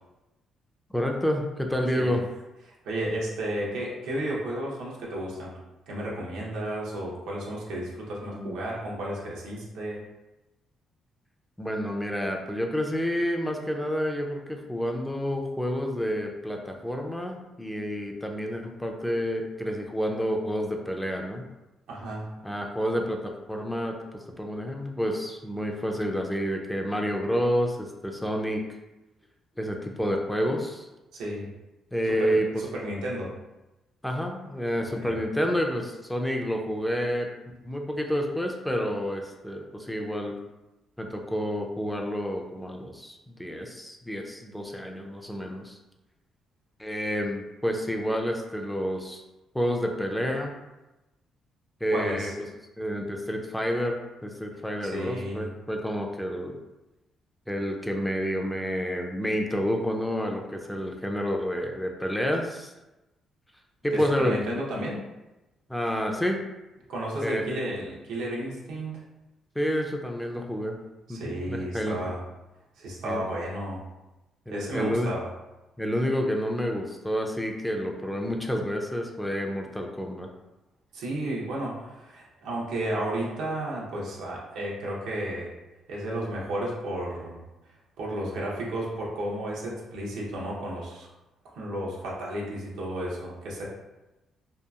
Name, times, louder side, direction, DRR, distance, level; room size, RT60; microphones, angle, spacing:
voice 1, 0.9-2.2 8.3-8.6 11.6-21.5 22.4-28.6 29.6-30.9 31.9-32.5 34.0-37.3 37.6-40.4 41.0-45.8 46.8-49.2 49.5-50.6 51.8-52.3 52.8-56.6 57.5-62.7 63.8-64.4 65.7-66.4 67.2-67.4 69.6-70.8 71.1-72.0 73.0-73.2 74.5-75.1 75.8-80.3, equal, 5° left, 2 dB, 0.4 m, -29 dB
voice 2, 2.6-5.6 5.9-10.0 21.9-22.3 31.1-31.5 32.1-33.3 34.8-35.1 51.9-52.3 54.8-55.5 63.9-65.0 66.9-69.0 71.1-72.2 72.8-73.8 74.5-75.3 80.9-85.5 85.9-91.1 91.4-93.6, right 1 dB, 90° right, -4 dB, 0.7 m, -33 dB
2.8 x 2.3 x 2.3 m, 1.0 s
cardioid pair, 90°, 0 cm